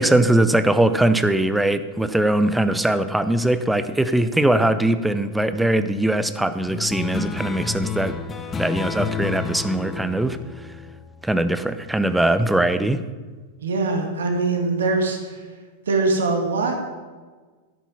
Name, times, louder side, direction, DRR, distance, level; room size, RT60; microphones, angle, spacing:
voice 1, 0.0-8.2 8.6-10.4 11.2-13.0, right 1 dB, 5° right, 11 dB, 0.8 m, -21 dB
sound 1, 6.7-11.6, left 6 dB, 20° left, 1.0 m, -30 dB
voice 2, 13.6-15.5 15.9-16.8, right 3 dB, 70° right, 3 dB, 2.6 m, -22 dB
13.0 x 10.0 x 5.6 m, 1.4 s
figure-of-eight pair, 95°, 0 cm